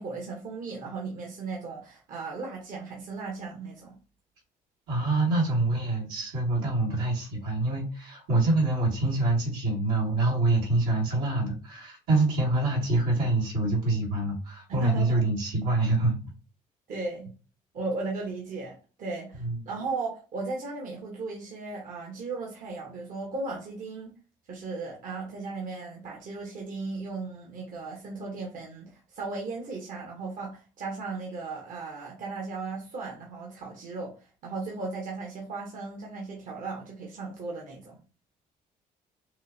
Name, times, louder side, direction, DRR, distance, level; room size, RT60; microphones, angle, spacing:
voice 1, 0.0-4.0 14.7-15.2 16.9-17.3 17.7-24.1 24.5-34.2 34.4-38.0, right 3 dB, 60° right, 1.2 m, -36 dB
voice 2, 4.9-16.2 19.4-19.5, right 2 dB, 90° right, 2.2 m, -26 dB
6.1 x 2.1 x 2.7 m
cardioid pair, 90°, 15 cm